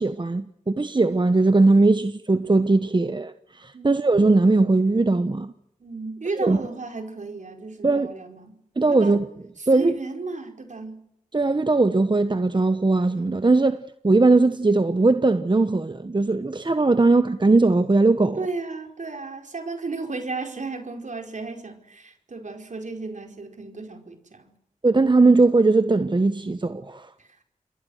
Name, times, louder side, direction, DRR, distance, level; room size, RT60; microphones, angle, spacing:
voice 1, 0.0-5.5 6.4-6.6 7.8-8.1 8.8-9.2 9.7-10.0 11.3-18.4 24.8-27.1, right 3 dB, 35° right, 1.1 m, -19 dB
voice 2, 5.8-8.6 8.9-9.2 9.6-11.0 18.4-24.5 27.2-27.3, right 3 dB, 65° right, 4.9 m, -34 dB
28.5 x 22.5 x 6.5 m
cardioid pair, 45°, 14 cm